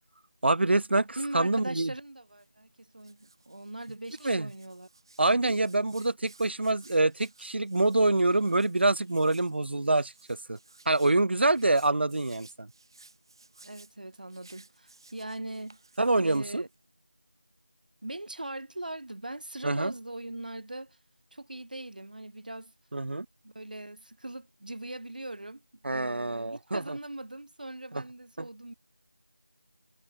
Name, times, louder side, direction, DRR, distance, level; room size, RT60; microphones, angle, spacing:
voice 1, 0.4-1.1 1.3-1.9 4.2-4.5 5.2-10.6 10.9-12.7 16.0-16.6 19.6-19.9 22.9-23.3 25.8-27.0 28.4-28.5, right 2 dB, 60° right, 0.3 m, -26 dB
voice 2, 1.2-4.9 5.3-5.5 13.6-15.8 16.2-16.7 18.0-21.0 21.3-22.7 23.4-25.6 25.9-28.7, right 1 dB, 40° right, 5.9 m, -40 dB
Hands, 2.3-16.9, right 3 dB, 20° right, 4.4 m, -58 dB
figure-of-eight pair, 180°, 7 cm